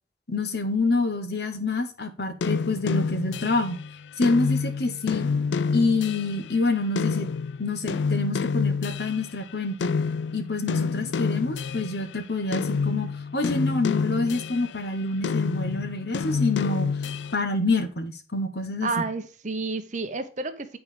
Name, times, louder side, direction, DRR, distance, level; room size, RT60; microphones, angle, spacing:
voice 1, 0.3-3.8 4.2-5.3 5.7-7.3 7.6-9.9 10.3-13.1 13.3-16.9 17.3-18.9, left 3 dB, 65° left, 1.2 m, -27 dB
sound 1, 2.4-9.5 9.8-12.1 12.5-14.8 15.2-17.3, left 5 dB, 80° left, 0.4 m, -28 dB
voice 2, 18.8-20.8, right 3 dB, 45° right, 0.9 m, -30 dB
8.8 x 4.7 x 5.0 m
head